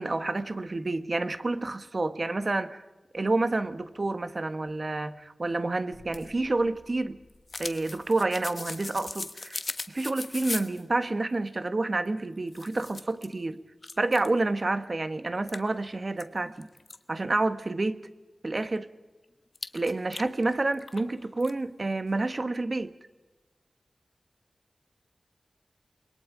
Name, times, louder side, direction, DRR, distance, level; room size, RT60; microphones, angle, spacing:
voice 1, 0.0-2.8 3.1-7.2 7.6-9.6 9.9-13.6 14.0-16.7 17.1-18.1 18.4-18.9 19.7-22.9, right 2 dB, 50° right, 1.3 m, -29 dB
sound 1, 5.9-10.8 12.0-12.1 12.5-13.3 13.8-14.4 14.8-14.9 15.5-17.0 19.5-21.1 21.4-21.5, left 3 dB, 50° left, 1.2 m, -39 dB
29.0 x 21.5 x 5.0 m
wide cardioid pair, 55°, 0 cm